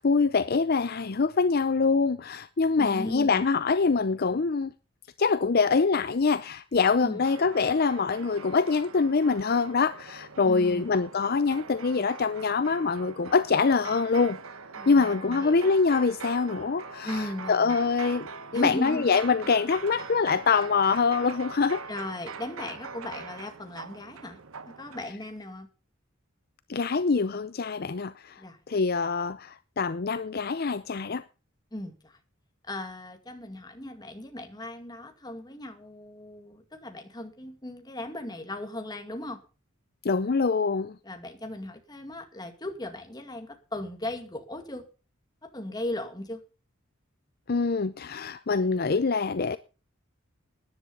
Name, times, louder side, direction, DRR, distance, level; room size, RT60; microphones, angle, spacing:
voice 1, 0.0-4.7 5.2-14.4 14.9-18.3 18.5-21.8 26.7-31.2 40.0-41.0 47.5-49.6, left 4 dB, 50° left, 0.6 m, -25 dB
voice 2, 2.8-3.4 7.0-7.2 10.5-10.9 14.8-15.7 17.0-17.8 18.5-19.1 21.9-24.4 24.7-25.7 28.4-28.6 31.7-32.2 32.7-39.4 41.0-44.9 45.4-46.4, left 1 dB, 20° left, 2.1 m, -37 dB
sound 1, 7.2-25.0, right 4 dB, 90° right, 1.1 m, -42 dB
13.5 x 10.5 x 5.4 m
head